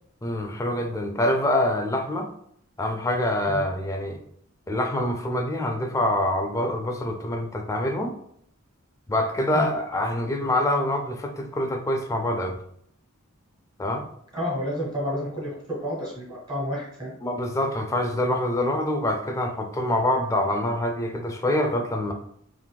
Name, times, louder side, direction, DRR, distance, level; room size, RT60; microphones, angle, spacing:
voice 1, 0.2-2.3 2.8-4.2 4.7-8.2 9.1-12.6 13.8-14.1 17.2-22.1, left 1 dB, 15° left, 4 dB, 0.3 m, -25 dB
voice 2, 14.3-17.1, equal, 20° right, -4 dB, 1.1 m, -30 dB
3.7 x 2.5 x 2.2 m, 0.67 s
head